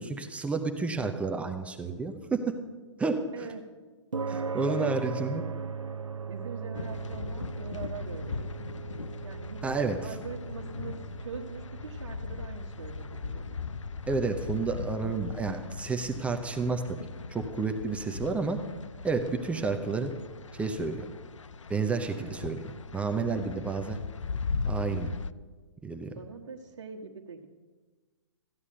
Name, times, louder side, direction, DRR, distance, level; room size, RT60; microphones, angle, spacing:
voice 1, 0.0-2.5 3.0-3.5 4.3-5.4 9.6-10.2 14.1-17.0 17.3-18.6 19.0-20.1 20.5-21.1 21.7-22.6 22.9-24.0 24.6-25.1 25.8-26.1, right 4 dB, 10° right, 6 dB, 0.7 m, -30 dB
voice 2, 3.3-3.6 4.6-4.9 6.3-8.6 9.2-13.6 22.1-22.3 26.0-27.5, right 5 dB, 65° right, -2 dB, 1.3 m, -43 dB
sound 1, 4.1-20.6, right 5 dB, 90° right, 0.5 m, -40 dB
sound 2, 6.7-25.3, left 5 dB, 80° left, 0.5 m, -39 dB
14.5 x 9.7 x 6.5 m, 1.4 s
figure-of-eight pair, 125°, 16 cm